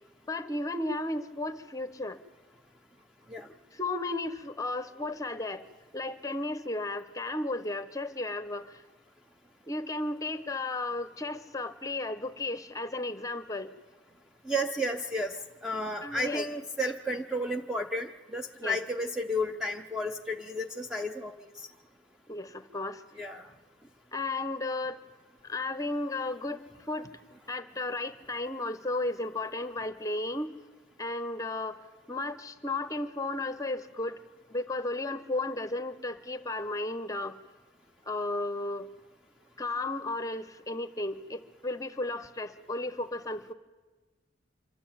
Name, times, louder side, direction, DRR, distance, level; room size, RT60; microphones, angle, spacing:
voice 1, 0.3-2.2 3.4-5.6 5.9-8.8 9.7-13.7 16.0-16.4 18.6-18.8 22.3-23.0 24.1-25.0 25.4-27.1 27.5-30.5 31.0-31.8 32.1-34.2 34.5-37.4 38.1-38.9 39.6-43.5, left 2 dB, 20° left, 12 dB, 0.9 m, -34 dB
voice 2, 14.5-15.3 15.6-21.3 23.2-23.4, equal, 5° right, 3 dB, 0.6 m, -32 dB
25.5 x 12.5 x 8.7 m, 1.3 s
head